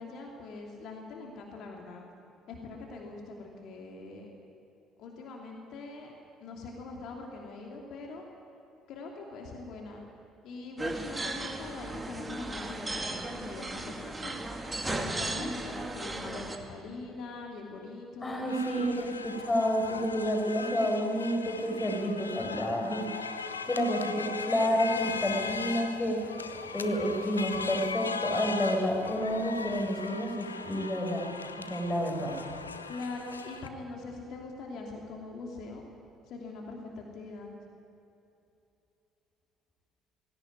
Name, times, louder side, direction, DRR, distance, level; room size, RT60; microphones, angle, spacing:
voice 1, 0.0-2.0 2.5-4.3 5.0-6.1 6.4-8.2 8.9-10.0 10.4-14.5 14.8-18.5 32.9-35.8 36.3-37.5, left 3 dB, 55° left, 0 dB, 3.0 m, -42 dB
sound 1, 10.8-16.6, right 2 dB, 20° right, 2.8 m, -36 dB
voice 2, 18.2-23.3 23.6-31.3 31.7-32.3, equal, 20° left, 1 dB, 6.3 m, -30 dB
sound 2, 18.5-33.7, left 5 dB, 85° left, 0.7 m, -39 dB
19.5 x 17.5 x 9.7 m, 2.8 s
figure-of-eight pair, 50°, 0 cm